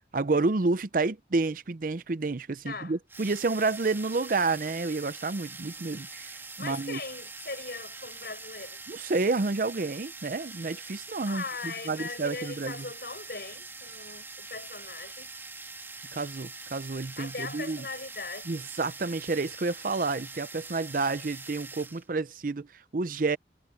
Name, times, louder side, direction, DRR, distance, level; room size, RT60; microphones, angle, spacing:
voice 1, 0.1-7.0 8.9-12.8 16.1-17.9 18.5-23.4, right 3 dB, 50° right, 0.6 m, -30 dB
sound 1, 3.1-22.1, right 3 dB, 15° right, 2.9 m, -44 dB
voice 2, 6.6-8.8 11.2-15.3 17.2-18.6, left 4 dB, 55° left, 6.0 m, -39 dB
head